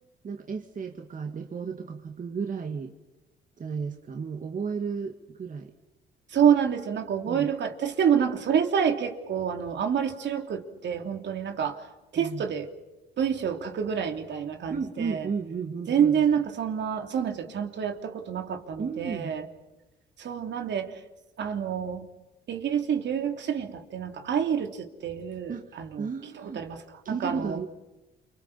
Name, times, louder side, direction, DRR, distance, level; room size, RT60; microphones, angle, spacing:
voice 1, 0.2-2.9 3.6-5.7 7.3-7.5 12.2-12.4 14.7-16.1 18.8-19.3 25.5-25.7 26.0-26.6 27.1-27.7, right 5 dB, 40° right, 4 dB, 2.0 m, -33 dB
voice 2, 6.3-11.9 12.1-12.7 13.2-15.3 15.9-19.5 20.2-21.0 21.4-22.1 22.5-26.1 26.3-27.6, right 8 dB, 65° right, 5 dB, 3.1 m, -27 dB
29.5 x 25.5 x 5.6 m, 1.0 s
cardioid pair, 90°, 20 cm